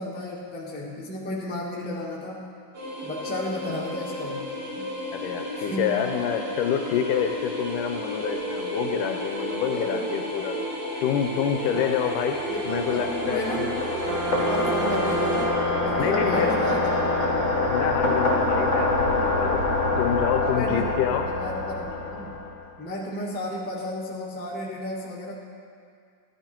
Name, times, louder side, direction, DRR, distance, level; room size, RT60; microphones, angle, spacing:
voice 1, 0.0-2.5 3.0-4.5 4.8-4.9 5.6-5.9 9.7-10.0 11.7-12.0 12.5-13.6 14.3-15.5 15.8-16.8 20.4-22.4 22.8-25.3, left 1 dB, 5° left, -5 dB, 0.7 m, -33 dB
sound 1, 2.7-15.5, right 1 dB, 40° right, 2.8 m, -32 dB
voice 2, 5.1-10.6 11.0-13.8 14.3-14.4 16.0-16.6 17.7-19.7 20.0-21.3, left 8 dB, 80° left, 5 dB, 2.0 m, -27 dB
sound 2, 11.9-22.6, left 3 dB, 30° left, 1.6 m, -26 dB
sound 3, 14.0-17.9, right 2 dB, 80° right, 3.1 m, -32 dB
14.0 x 12.0 x 4.5 m, 2.2 s
omnidirectional pair, 4.0 m